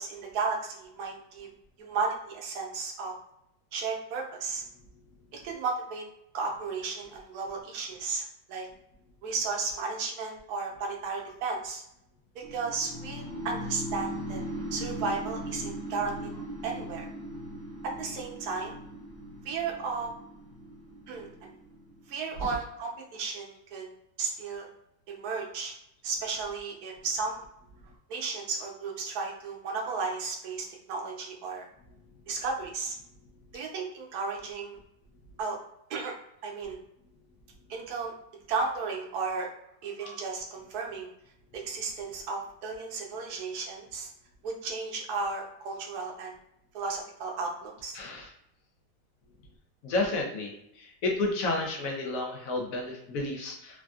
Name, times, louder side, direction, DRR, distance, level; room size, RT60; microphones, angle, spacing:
voice 1, 0.0-1.5 1.8-3.1 3.7-4.6 5.3-6.0 6.3-8.7 9.2-11.8 12.3-14.4 14.7-17.1 17.8-18.7 19.4-20.1 21.1-21.5 22.1-23.9 24.2-24.7 25.1-25.7 26.0-27.4 28.1-31.6 32.3-32.9 33.5-34.8 35.4-35.6 35.9-36.1 36.4-36.8 37.7-38.1 38.5-39.5 39.8-41.1 41.5-44.1 44.4-46.4 46.7-48.0, right 4 dB, 65° right, 0 dB, 1.1 m, -34 dB
sound 1, 12.4-22.4, equal, 25° left, 0.5 m, -39 dB
voice 2, 47.9-48.3 49.8-53.8, left 2 dB, 65° left, 1 dB, 0.8 m, -31 dB
3.3 x 2.5 x 2.3 m, 0.78 s
omnidirectional pair, 2.0 m